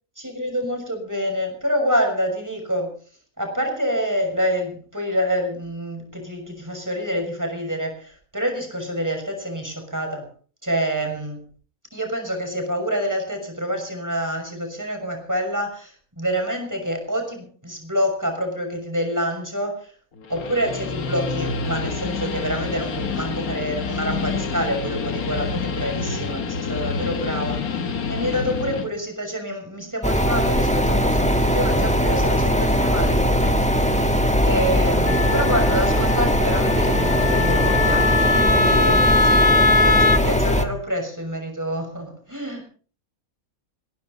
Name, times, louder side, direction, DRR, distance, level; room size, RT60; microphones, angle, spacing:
voice 1, 0.2-3.0 3.4-10.3 10.6-11.4 11.9-19.9 20.3-39.4 39.8-42.6, equal, 10° right, 3 dB, 6.3 m, -27 dB
Guitar, 20.2-28.9, left 4 dB, 80° left, 1.9 m, -28 dB
sound 1, 30.0-40.6, equal, 5° left, 1.5 m, -20 dB
Wind instrument woodwind instrument, 35.1-40.2, left 3 dB, 35° left, 0.8 m, -21 dB
21.0 x 17.0 x 4.0 m, 0.41 s
omnidirectional pair, 1.5 m